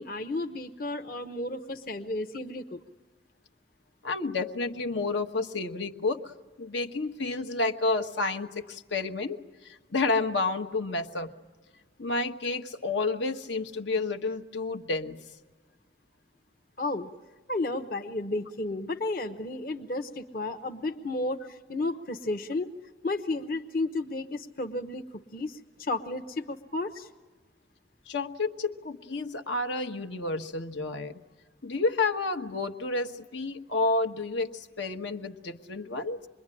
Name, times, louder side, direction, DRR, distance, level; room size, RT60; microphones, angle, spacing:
voice 1, 0.0-2.8 16.8-17.1 17.5-22.7 23.0-27.1, left 2 dB, 50° left, 5 dB, 0.9 m, -33 dB
voice 2, 4.0-6.3 6.6-11.3 12.0-15.2 28.1-31.2 31.6-36.2, left 3 dB, 85° left, 5 dB, 1.4 m, -30 dB
27.0 x 22.0 x 10.0 m, 1.3 s
head